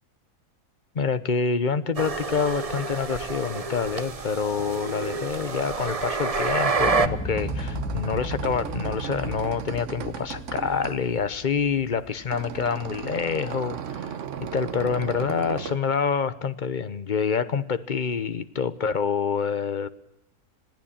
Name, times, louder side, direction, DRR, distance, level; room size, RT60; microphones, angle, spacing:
voice 1, 0.9-14.1 14.5-19.9, left 6 dB, 35° left, 14 dB, 1.0 m, -27 dB
sound 1, 2.0-7.1, right 4 dB, 30° right, 0.8 m, -28 dB
Explosion, 6.7-12.8 13.1-13.2, left 1 dB, 5° left, 2.4 m, -36 dB
sound 2, 7.1-15.8, right 8 dB, 55° right, 1.3 m, -36 dB
21.5 x 15.5 x 8.7 m, 0.78 s
omnidirectional pair, 1.7 m